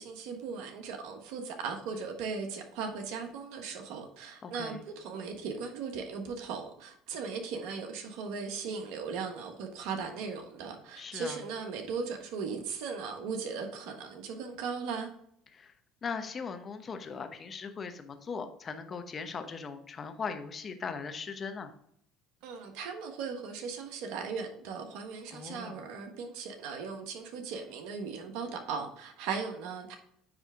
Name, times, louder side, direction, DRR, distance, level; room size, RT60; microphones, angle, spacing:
voice 1, 0.0-15.1 22.4-29.9, right 5 dB, 75° right, 1.3 m, -38 dB
voice 2, 4.4-4.8 11.0-11.4 15.5-15.7 16.0-21.7 25.3-25.8, left 5 dB, 35° left, 0.9 m, -39 dB
9.5 x 3.4 x 3.6 m
supercardioid pair, 80°, 0 cm